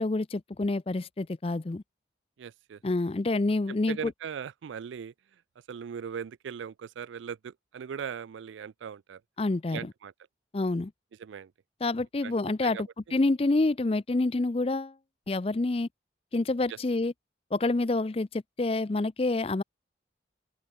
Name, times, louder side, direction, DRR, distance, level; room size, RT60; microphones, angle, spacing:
voice 1, 0.0-1.8 2.8-4.1 9.4-9.9 10.5-10.9 11.8-14.9 15.3-15.9 16.3-17.1 17.5-19.6, left 2 dB, 30° left, 0.5 m, -27 dB
voice 2, 2.4-2.8 3.9-5.1 5.7-9.2 9.7-10.1 11.2-11.5 12.2-12.8 16.7-16.8, right 7 dB, 85° right, 0.4 m, -39 dB
head